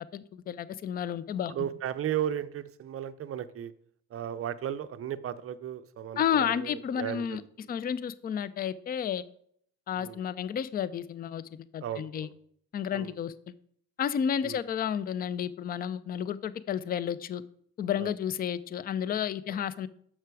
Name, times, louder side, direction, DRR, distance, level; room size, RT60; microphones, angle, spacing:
voice 1, 0.1-1.5 6.2-7.4 7.7-9.2 9.9-12.3 12.7-13.5 14.0-17.4 17.8-19.9, left 8 dB, 20° left, 17 dB, 0.3 m, -31 dB
voice 2, 1.5-3.7 4.1-7.7 10.0-10.2 11.8-12.3 12.9-13.2 14.4-14.6 18.0-18.1 19.5-19.6, right 10 dB, 30° right, 12 dB, 0.6 m, -35 dB
6.6 x 5.9 x 4.7 m, 0.65 s
hypercardioid pair, 70°, 45 cm